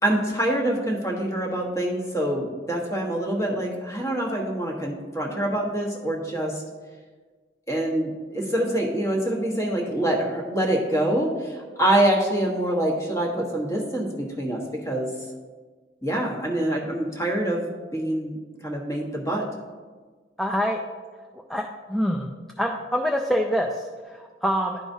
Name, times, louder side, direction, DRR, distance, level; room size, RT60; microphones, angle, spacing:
voice 1, 0.0-6.6 7.7-15.1 16.0-18.4 18.6-19.4, right 1 dB, 20° left, -2 dB, 1.1 m, -25 dB
voice 2, 20.4-20.8 21.3-21.6 21.9-24.8, equal, ahead, 1 dB, 0.3 m, -26 dB
11.0 x 4.8 x 2.7 m, 1.5 s
head